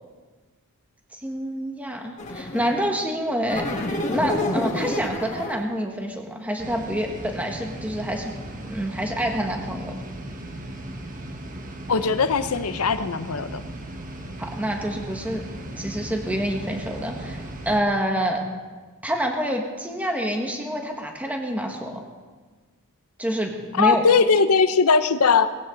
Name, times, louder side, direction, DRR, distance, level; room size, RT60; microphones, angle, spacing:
voice 1, 1.1-3.7 4.1-8.3 8.6-9.9 14.4-15.4 15.8-18.4 19.0-22.0 23.2-24.0, equal, 5° right, 2 dB, 1.6 m, -27 dB
sound 1, 2.2-2.9 3.5-5.7, left 1 dB, 35° left, 1.7 m, -28 dB
sound 2, 6.6-17.8, right 1 dB, 35° right, 1.4 m, -37 dB
voice 2, 11.9-13.6 23.8-25.5, left 5 dB, 75° left, 11 dB, 0.7 m, -19 dB
19.5 x 16.5 x 3.9 m, 1.4 s
head